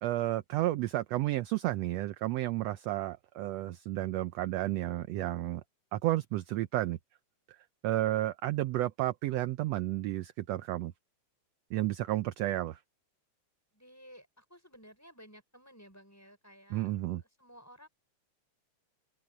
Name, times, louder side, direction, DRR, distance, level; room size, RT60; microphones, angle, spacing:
voice 1, 0.0-5.6 5.9-7.0 7.5-7.6 7.8-10.9 11.7-12.8 16.7-17.2, right 15 dB, 75° right, 1.7 m, -32 dB
voice 2, 13.7-16.9 17.2-17.9, equal, 5° left, 6.5 m, -55 dB
open air
omnidirectional pair, 3.3 m